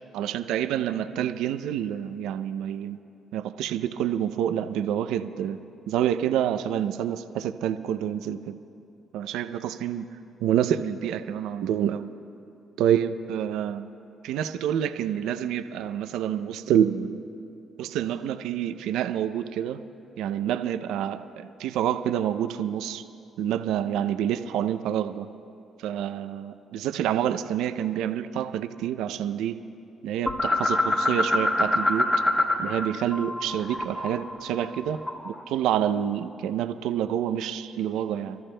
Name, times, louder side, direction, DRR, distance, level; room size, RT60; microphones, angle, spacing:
voice 1, 0.1-3.0 3.3-5.6 5.9-8.6 9.1-10.0 10.4-12.1 12.8-13.9 14.2-17.2 17.8-19.8 20.2-23.0 23.4-25.3 25.8-29.6 30.0-32.1 32.6-38.4, right 10 dB, 85° right, 10 dB, 0.5 m, -27 dB
sound 1, 30.3-32.9 33.1-35.4, left 2 dB, 20° left, 1.0 m, -25 dB
30.0 x 13.5 x 2.2 m, 2.7 s
supercardioid pair, 70°, 0 cm